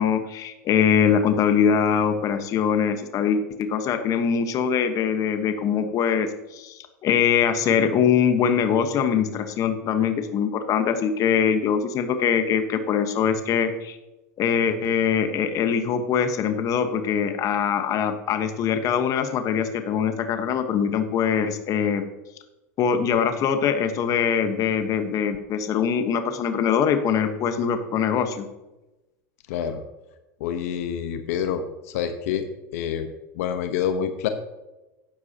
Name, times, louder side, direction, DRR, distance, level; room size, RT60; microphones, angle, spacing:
voice 1, 0.0-14.0 14.4-22.0 22.8-28.4, left 7 dB, 45° left, 8 dB, 1.2 m, -23 dB
voice 2, 29.5-29.8 30.4-32.5 32.7-33.1 33.3-34.3, left 8 dB, 75° left, 8 dB, 1.0 m, -27 dB
13.0 x 9.5 x 2.9 m, 1.0 s
supercardioid pair, 115°, 8 cm